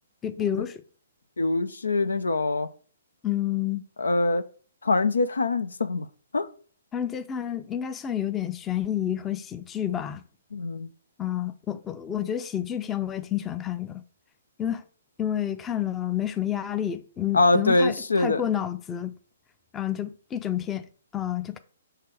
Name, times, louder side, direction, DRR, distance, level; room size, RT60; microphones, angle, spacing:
voice 1, 0.2-0.8 3.2-3.8 6.9-10.2 11.2-14.0 14.6-14.8 15.2-19.2 19.7-21.6, left 10 dB, 15° left, 0.6 m, -29 dB
voice 2, 1.4-2.7 4.0-4.4 4.8-6.1 6.3-6.5 10.5-10.9 17.3-18.4, left 2 dB, 80° left, 0.6 m, -23 dB
6.6 x 3.3 x 6.1 m
figure-of-eight pair, 130°, 0 cm